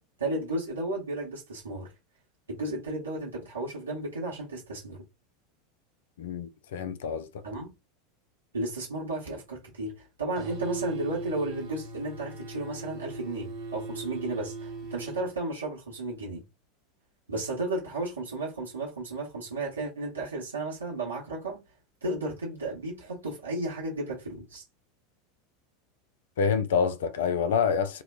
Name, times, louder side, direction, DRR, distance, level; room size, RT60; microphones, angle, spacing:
voice 1, 0.2-1.9 2.5-5.0 7.4-7.7 8.5-16.4 17.3-21.6 22.0-24.6, right 2 dB, 80° right, 0.9 m, -33 dB
voice 2, 6.2-7.3 26.4-28.0, left 6 dB, 65° left, 0.4 m, -27 dB
sound 1, 10.4-15.3, right 3 dB, 45° right, 0.9 m, -38 dB
2.8 x 2.2 x 2.4 m
figure-of-eight pair, 85°, 0 cm